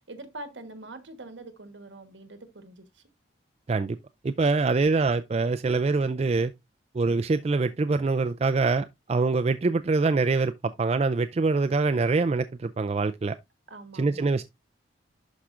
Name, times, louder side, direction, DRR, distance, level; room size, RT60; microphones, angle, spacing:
voice 1, 0.0-3.0 13.7-14.3, right 2 dB, 70° right, 1.3 m, -44 dB
voice 2, 4.2-6.5 6.9-13.3 13.9-14.4, right 3 dB, 30° right, 0.3 m, -24 dB
11.5 x 4.8 x 2.5 m
head